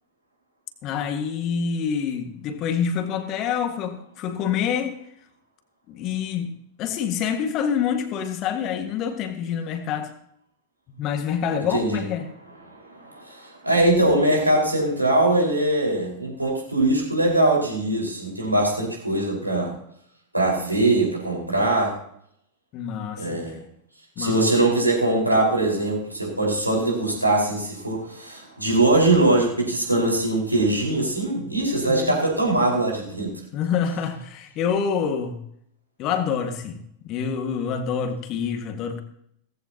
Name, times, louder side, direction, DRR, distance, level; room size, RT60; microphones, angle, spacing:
voice 1, 0.8-5.0 5.9-6.5 6.8-10.1 10.9-12.3 22.7-23.6 24.2-24.5 31.9-32.2 33.5-35.4 36.0-36.8 37.0-39.0, left 7 dB, 35° left, 1.8 m, -27 dB
voice 2, 11.7-12.0 12.7-19.7 20.3-22.0 23.2-23.6 24.2-33.3, right 2 dB, 85° right, 4.9 m, -22 dB
18.0 x 15.0 x 2.9 m
figure-of-eight pair, 90°, 0 cm